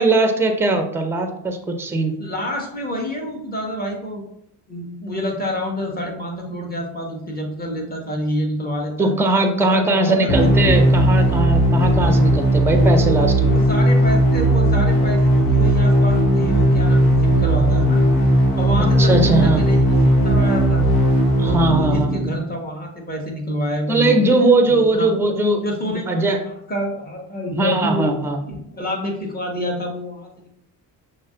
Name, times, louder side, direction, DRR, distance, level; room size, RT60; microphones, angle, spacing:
voice 1, 0.0-2.1 9.0-13.5 19.0-19.6 21.4-22.2 23.9-26.4 27.5-28.4, right 2 dB, 5° right, 5 dB, 0.5 m, -19 dB
voice 2, 2.2-4.2 4.7-9.1 9.7-10.5 13.4-18.0 18.6-20.8 21.4-24.2 24.6-25.1 25.6-28.2 28.5-30.5, equal, 20° left, -1 dB, 1.3 m, -27 dB
sound 1, 10.3-22.3, equal, 80° left, 0.9 m, -16 dB
6.1 x 2.1 x 2.5 m, 0.75 s
hypercardioid pair, 50°, 48 cm